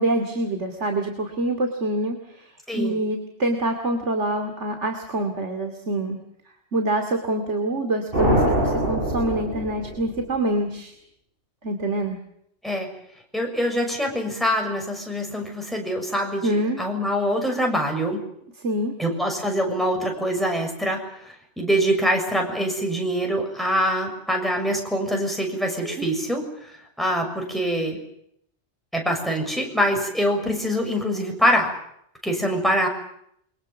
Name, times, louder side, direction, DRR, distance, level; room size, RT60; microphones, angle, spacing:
voice 1, 0.0-6.2 6.7-10.9 11.6-12.2 16.4-16.8 18.6-18.9 25.8-26.0, right 1 dB, 80° right, 5 dB, 2.9 m, -26 dB
voice 2, 2.7-3.0 12.6-12.9 13.3-18.2 19.0-21.0 21.2-26.5 27.0-28.0 28.9-31.7 32.2-32.9, equal, ahead, 1 dB, 6.7 m, -24 dB
sound 1, 8.1-10.4, equal, 50° right, 6.9 m, -23 dB
28.5 x 23.5 x 7.3 m, 0.73 s
omnidirectional pair, 1.2 m